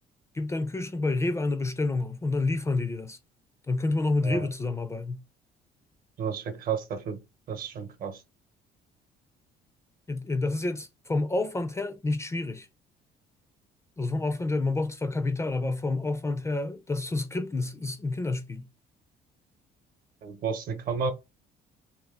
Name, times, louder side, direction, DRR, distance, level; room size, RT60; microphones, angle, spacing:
voice 1, 0.3-3.2 3.7-5.2 10.1-12.7 14.0-18.7, left 2 dB, 15° left, 0.4 m, -29 dB
voice 2, 6.2-7.2 7.5-8.2 20.2-21.1, right 6 dB, 60° right, 0.8 m, -32 dB
2.8 x 2.3 x 3.5 m
cardioid pair, 110°, 17 cm